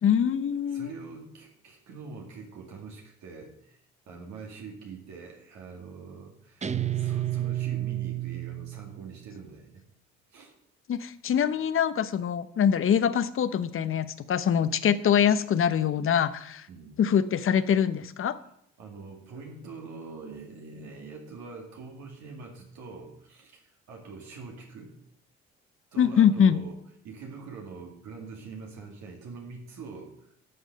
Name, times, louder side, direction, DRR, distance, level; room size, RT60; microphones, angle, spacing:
voice 1, 0.0-0.9 10.9-16.6 17.0-18.3 26.0-26.6, left 8 dB, 45° left, 13 dB, 0.7 m, -24 dB
voice 2, 0.7-6.7 6.9-9.8 10.3-10.5 16.7-17.0 18.4-18.5 18.8-25.0 25.9-26.7 27.0-30.3, right 4 dB, 70° right, 0 dB, 2.1 m, -44 dB
Guitar, 6.6-9.2, right 13 dB, 25° right, 0.6 m, -31 dB
12.0 x 6.2 x 5.2 m, 0.72 s
supercardioid pair, 70°, 29 cm